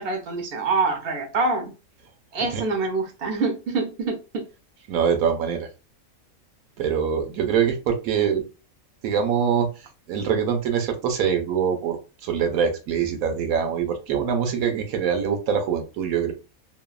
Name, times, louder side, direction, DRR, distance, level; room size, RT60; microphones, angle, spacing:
voice 1, 0.0-1.7 2.3-4.4, right 3 dB, 60° right, 0.6 m, -25 dB
voice 2, 4.9-5.7 6.8-8.4 9.0-9.7 10.1-16.3, right 7 dB, 80° right, 1.1 m, -24 dB
3.0 x 2.0 x 2.3 m
omnidirectional pair, 1.5 m